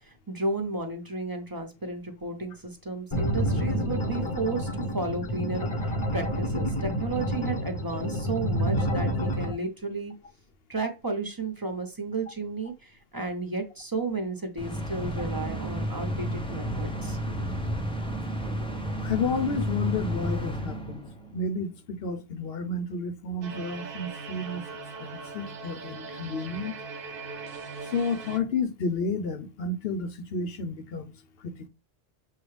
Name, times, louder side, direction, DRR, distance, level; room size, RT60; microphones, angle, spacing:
voice 1, 0.3-10.1 10.7-17.2, right 3 dB, 20° right, 0.8 m, -33 dB
sound 1, 3.1-9.5, equal, 30° left, 0.8 m, -28 dB
sound 2, 14.6-21.4, equal, 5° left, 0.5 m, -32 dB
voice 2, 19.0-24.6 25.0-26.8 27.9-31.1 31.4-31.7, left 4 dB, 70° left, 0.9 m, -31 dB
sound 3, 23.4-28.4, right 4 dB, 60° right, 0.9 m, -40 dB
6.5 x 2.3 x 3.2 m
omnidirectional pair, 1.1 m